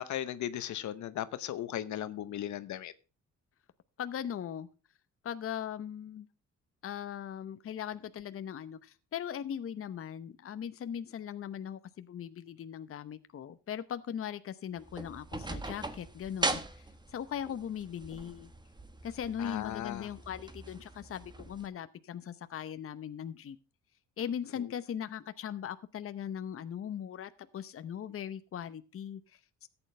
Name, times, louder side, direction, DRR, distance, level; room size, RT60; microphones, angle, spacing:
voice 1, 0.0-2.9 19.4-20.1, left 11 dB, 70° left, 0.9 m, -37 dB
voice 2, 4.0-4.7 5.2-6.3 6.8-18.5 19.0-23.6 24.2-29.7, left 9 dB, 45° left, 0.8 m, -39 dB
sound 1, 14.8-21.7, right 2 dB, 15° right, 1.4 m, -40 dB
14.0 x 8.9 x 3.3 m
cardioid pair, 90°, 30 cm